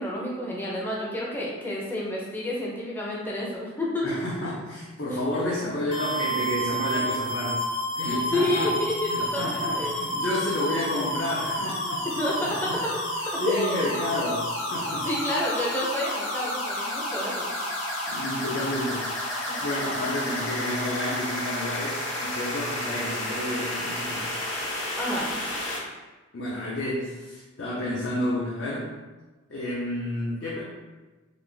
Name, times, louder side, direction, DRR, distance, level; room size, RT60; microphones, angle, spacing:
voice 1, 0.0-4.1 5.1-5.3 8.0-10.0 12.2-12.5 13.5-13.9 14.9-17.5 25.0-25.3, left 1 dB, 10° left, -4 dB, 0.6 m, -29 dB
voice 2, 4.0-7.6 7.9-8.8 9.1-12.1 12.4-12.8 13.2-15.1 18.1-24.3 26.3-28.9 29.5-30.6, left 1 dB, 60° left, -7 dB, 0.8 m, -31 dB
sound 1, 5.9-25.8, equal, 80° left, 1.1 m, -30 dB
4.2 x 2.4 x 3.3 m, 1.2 s
head